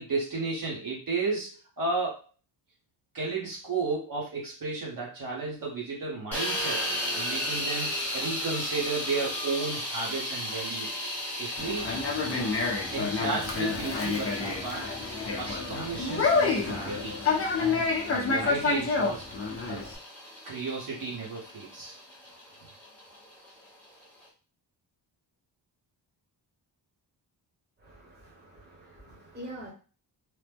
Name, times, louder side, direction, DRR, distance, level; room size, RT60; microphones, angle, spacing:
voice 1, 0.0-2.2 3.1-6.8 7.2-10.9 11.4-11.9 12.9-14.9 15.4-17.2 17.6-19.3 19.7-19.8 20.4-22.0, right 3 dB, 45° right, -4 dB, 0.9 m, -33 dB
sound 1, 6.3-24.3, left 1 dB, 5° left, 0.8 m, -36 dB
Conversation, 11.6-20.0, left 4 dB, 30° left, 0.6 m, -29 dB
voice 2, 27.8-29.7, right 1 dB, 25° right, -4 dB, 1.0 m, -45 dB
3.0 x 2.0 x 3.3 m, 0.36 s
wide cardioid pair, 175°, 44 cm